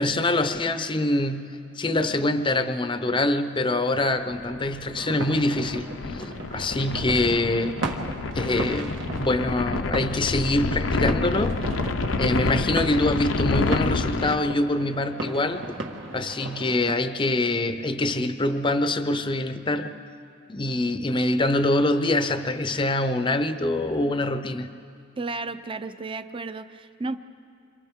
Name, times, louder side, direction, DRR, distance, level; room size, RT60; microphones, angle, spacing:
voice 1, 0.0-7.9 8.3-11.6 12.1-15.7 16.1-20.0 20.5-24.7, left 2 dB, 25° left, 9 dB, 0.6 m, -25 dB
sound 1, 4.3-14.4, left 3 dB, 80° left, 0.7 m, -28 dB
sound 2, 4.9-16.9, right 2 dB, 75° right, 1.6 m, -36 dB
voice 2, 25.2-27.2, right 3 dB, 25° right, 11 dB, 0.6 m, -33 dB
28.5 x 27.5 x 3.7 m, 2.5 s
head